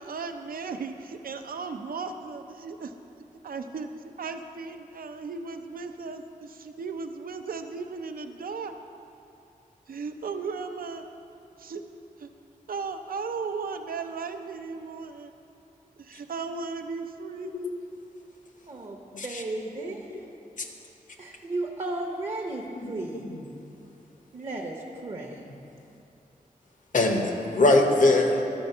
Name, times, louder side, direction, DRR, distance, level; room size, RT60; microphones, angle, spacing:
voice 1, 0.0-2.9 3.4-8.8 9.9-11.1 11.6-11.8 12.2-12.3 12.7-15.3 16.0-17.5, right 4 dB, 80° right, 7 dB, 0.5 m, -36 dB
voice 2, 18.7-20.2 21.2-23.2 24.3-25.4, right 2 dB, 40° right, -1 dB, 0.7 m, -34 dB
voice 3, 19.8-20.2 22.7-22.9 23.1-23.5 25.3-25.4 26.9-28.4, left 2 dB, 60° left, 3 dB, 0.8 m, -23 dB
12.0 x 4.3 x 5.4 m, 2.8 s
wide cardioid pair, 130°, 15 cm